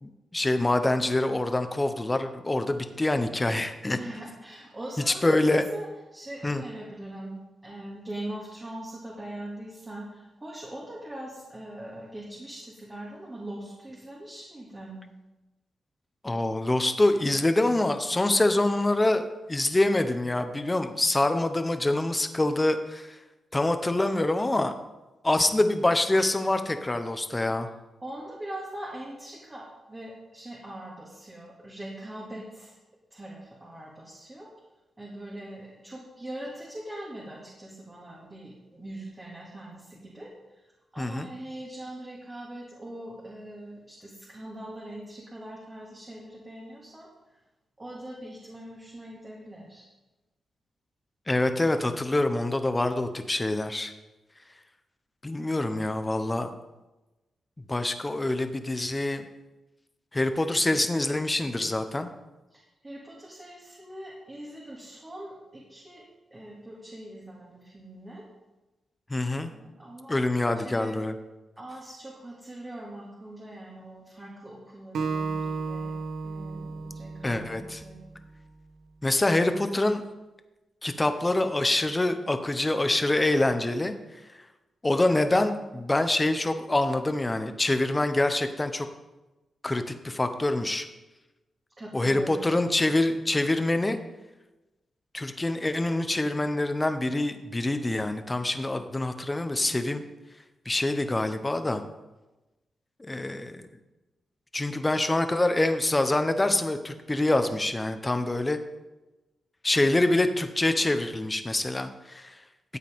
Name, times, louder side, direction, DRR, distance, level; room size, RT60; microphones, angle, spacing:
voice 1, 0.0-4.0 5.1-5.7 6.4-6.6 16.2-23.2 23.5-24.7 25.2-27.7 41.0-41.3 51.3-53.9 55.2-56.5 57.7-59.2 60.1-62.1 69.1-69.5 70.1-71.1 77.2-77.8 79.0-80.0 80.8-83.9 84.8-88.9 89.6-90.8 91.9-94.0 95.1-100.0 100.6-101.8 103.0-103.7 104.5-108.6 109.6-112.4, left 2 dB, 20° left, 8 dB, 1.0 m, -25 dB
voice 2, 3.9-7.4 7.6-15.0 28.0-32.8 33.1-34.5 35.0-40.3 40.9-47.1 47.8-49.9 62.5-66.0 66.3-68.3 69.4-71.0 71.6-75.9 76.2-78.0 91.8-92.5, right 1 dB, 25° right, -5 dB, 2.4 m, -41 dB
Acoustic guitar, 74.9-78.2, right 4 dB, 80° right, 0.9 m, -34 dB
13.5 x 8.2 x 3.7 m, 1.1 s
cardioid pair, 85°, 0 cm